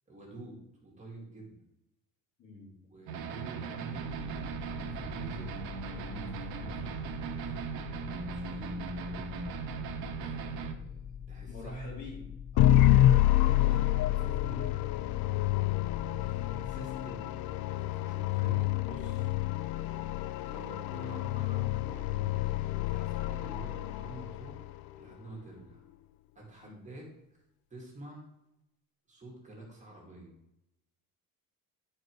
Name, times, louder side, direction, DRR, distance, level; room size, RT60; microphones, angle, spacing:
voice 1, 0.1-1.6 2.9-5.6 5.9-7.7 8.1-9.3 10.1-10.9 11.3-11.9 12.5-12.9 13.2-14.8 16.2-17.5 17.8-19.3 20.4-25.8 26.3-27.4 27.7-28.3 29.1-30.3, right 2 dB, 20° right, -2 dB, 2.3 m, -48 dB
voice 2, 2.4-2.7 8.5-8.8 11.4-12.3 26.6-26.8, left 3 dB, 50° left, -3 dB, 3.3 m, -47 dB
sound 1, 3.1-10.7, right 6 dB, 85° right, 1.1 m, -38 dB
sound 2, 4.0-17.0, left 8 dB, 20° left, 0.6 m, -44 dB
sound 3, 12.6-24.7, left 14 dB, 80° left, 0.5 m, -28 dB
11.5 x 4.9 x 4.7 m, 0.88 s
cardioid pair, 165°, 35 cm